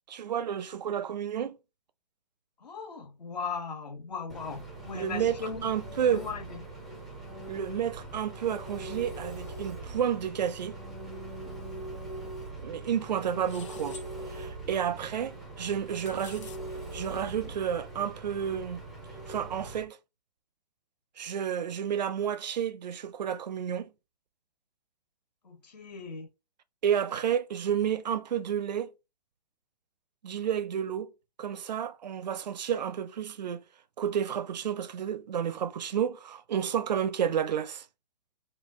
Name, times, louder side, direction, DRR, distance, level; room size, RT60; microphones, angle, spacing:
voice 1, 0.1-1.6 4.9-6.3 7.5-10.8 12.6-14.0 14.3-16.5 16.9-18.8 19.3-20.0 21.2-23.9 26.8-28.9 30.2-31.1 31.4-33.6 34.0-37.9, right 9 dB, 85° right, 0.5 m, -31 dB
voice 2, 2.6-5.6 6.1-6.6 13.3-13.4 25.4-26.3, left 5 dB, 75° left, 1.6 m, -38 dB
Engine, 4.3-19.8, right 2 dB, ahead, 0.4 m, -42 dB
sound 1, 13.4-14.1 15.7-16.6, left 6 dB, 45° left, 0.7 m, -49 dB
3.8 x 2.3 x 3.5 m
hypercardioid pair, 155°, 21 cm